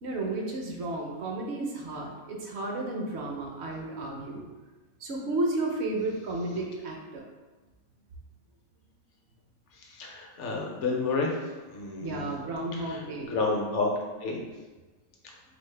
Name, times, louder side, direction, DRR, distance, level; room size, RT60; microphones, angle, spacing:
voice 1, 0.0-4.4 5.0-7.2 12.0-13.3, right 2 dB, 65° right, 0 dB, 0.8 m, -32 dB
voice 2, 9.7-11.3 11.7-12.2 12.8-13.9 14.2-14.4, left 3 dB, 65° left, 0 dB, 0.9 m, -30 dB
4.0 x 2.0 x 3.2 m, 1.3 s
omnidirectional pair, 1.4 m